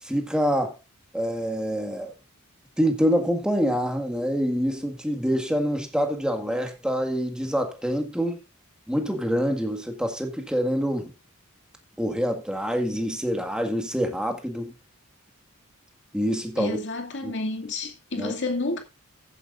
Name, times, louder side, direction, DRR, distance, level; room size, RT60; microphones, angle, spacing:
voice 1, 0.0-0.8 1.1-2.1 2.8-8.4 8.9-11.1 12.0-14.7 16.1-16.8 17.2-17.3 18.2-18.3, equal, 5° right, 1.8 m, -26 dB
voice 2, 16.6-18.8, left 2 dB, 55° left, 2.3 m, -30 dB
15.0 x 9.5 x 2.5 m
head